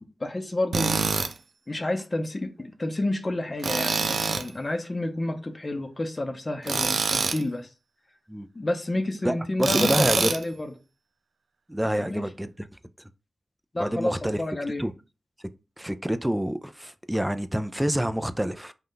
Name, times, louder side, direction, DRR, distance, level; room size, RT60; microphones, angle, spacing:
voice 1, 0.2-1.3 1.7-7.7 8.5-10.7 11.8-12.2 13.7-14.9, left 2 dB, 30° left, 0.7 m, -30 dB
Tools, 0.7-1.3 3.6-4.5 6.6-7.4 9.6-10.4, right 4 dB, 75° right, 0.5 m, -25 dB
voice 2, 9.6-10.3 11.7-12.7 13.8-14.4 14.8-14.9 15.8-18.7, equal, 5° right, 0.3 m, -27 dB
5.4 x 2.3 x 3.8 m
wide cardioid pair, 115°, 0 cm